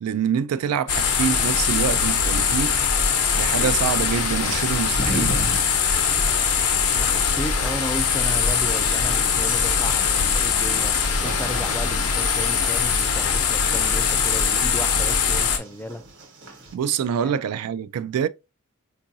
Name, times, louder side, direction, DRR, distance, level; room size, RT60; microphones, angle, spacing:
voice 1, 0.0-2.8 3.3-5.5 16.7-18.3, right 8 dB, 75° right, 0.3 m, -25 dB
sound 1, 0.9-15.6, left 6 dB, 80° left, 0.8 m, -22 dB
sound 2, 1.1-16.8, right 1 dB, 55° right, 1.0 m, -38 dB
voice 2, 6.9-16.0 17.2-17.4, left 1 dB, 10° left, 0.3 m, -34 dB
4.6 x 2.5 x 2.6 m
head